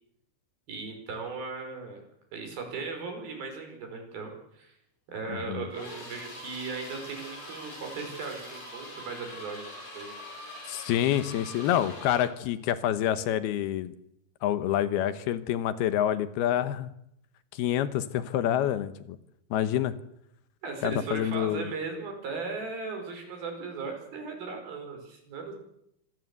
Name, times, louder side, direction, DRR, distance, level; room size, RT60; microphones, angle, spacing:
voice 1, 0.7-2.0 2.3-4.7 5.1-9.6 9.9-10.1 20.6-25.5, right 4 dB, 70° right, 4 dB, 6.8 m, -37 dB
voice 2, 5.3-5.7 10.7-13.9 14.4-16.9 17.5-19.2 19.5-19.9 20.8-21.6, left 11 dB, 85° left, 12 dB, 3.1 m, -27 dB
sound 1, 5.7-12.4, left 1 dB, 60° left, 9.5 m, -43 dB
25.5 x 17.0 x 8.1 m, 0.78 s
omnidirectional pair, 4.4 m